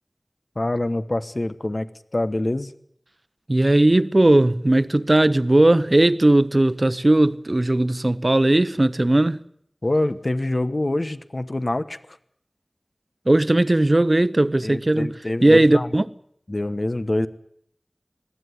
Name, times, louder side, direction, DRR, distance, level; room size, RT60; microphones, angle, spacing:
voice 1, 0.6-1.9 2.1-2.7 9.8-12.0 14.6-15.9 16.5-17.3, left 1 dB, 55° left, 1.1 m, -25 dB
voice 2, 3.5-9.4 13.3-15.1 15.4-16.0, right 1 dB, 45° right, 0.8 m, -18 dB
21.0 x 15.5 x 9.7 m
wide cardioid pair, 40°, 0 cm